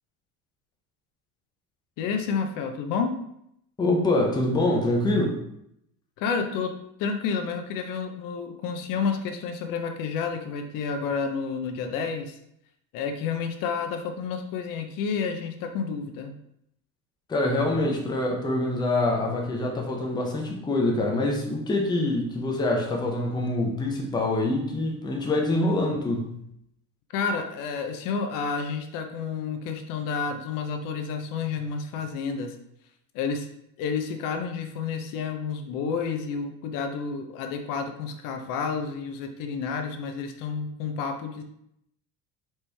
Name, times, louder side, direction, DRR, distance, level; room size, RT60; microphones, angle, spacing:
voice 1, 2.0-3.2 6.2-12.4 12.9-16.3 17.7-18.0 27.1-32.6 33.1-33.5 33.8-41.4, left 5 dB, 65° left, 6 dB, 0.6 m, -30 dB
voice 2, 3.8-5.4 17.3-26.3, left 2 dB, 10° left, -1 dB, 0.6 m, -25 dB
4.3 x 3.1 x 3.3 m, 0.76 s
cardioid pair, 150°, 35 cm